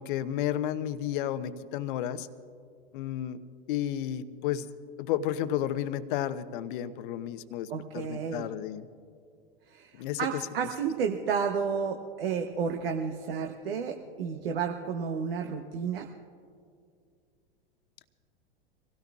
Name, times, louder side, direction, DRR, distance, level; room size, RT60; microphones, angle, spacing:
voice 1, 0.0-2.3 2.9-3.4 3.7-4.7 5.0-8.9 10.0-10.4, left 11 dB, 60° left, 13 dB, 0.8 m, -32 dB
voice 2, 7.7-8.5 9.7-16.1, right 6 dB, 75° right, 4 dB, 1.0 m, -31 dB
25.5 x 16.5 x 2.4 m, 2.3 s
hypercardioid pair, 95°, 29 cm